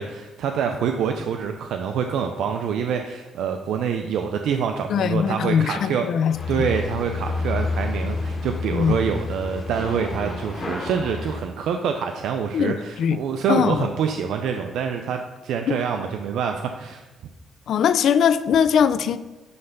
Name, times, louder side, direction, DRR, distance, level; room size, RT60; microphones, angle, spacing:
voice 1, 0.0-6.1 6.5-17.0, right 7 dB, 80° right, 0.5 m, -26 dB
voice 2, 4.9-6.7 8.7-9.0 12.5-13.2 13.5-13.9 15.7-15.8 17.7-19.2, left 7 dB, 70° left, 0.4 m, -21 dB
sound 1, 6.3-11.4, left 3 dB, 35° left, 1.8 m, -29 dB
9.6 x 3.3 x 5.5 m
cardioid pair, 90°, 0 cm